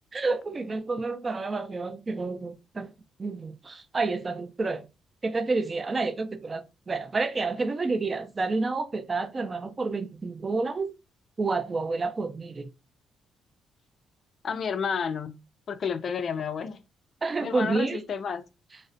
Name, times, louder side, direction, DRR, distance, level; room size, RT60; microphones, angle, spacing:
voice 1, 0.1-2.9 3.2-4.9 5.2-10.9 11.4-12.7 17.2-18.0, right 3 dB, 30° right, 0.3 m, -29 dB
voice 2, 14.4-15.4 15.7-16.8 17.4-18.4, left 6 dB, 55° left, 0.3 m, -31 dB
2.4 x 2.1 x 2.4 m
cardioid pair, 90°, 0 cm